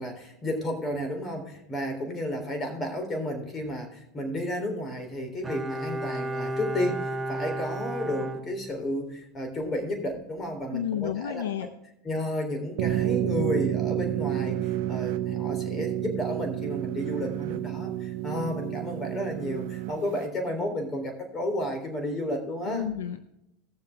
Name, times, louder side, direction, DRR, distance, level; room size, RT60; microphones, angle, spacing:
voice 1, 0.0-11.7 12.0-22.9, left 1 dB, 30° left, 5 dB, 3.6 m, -32 dB
Bowed string instrument, 5.4-9.2 9.5-9.6, right 1 dB, 15° right, 0.9 m, -33 dB
voice 2, 10.7-11.7 22.7-23.2, left 10 dB, 80° left, 10 dB, 0.7 m, -31 dB
sound 1, 12.8-20.3, right 13 dB, 65° right, 0.9 m, -30 dB
17.0 x 7.0 x 3.6 m, 0.81 s
hypercardioid pair, 90°, 0 cm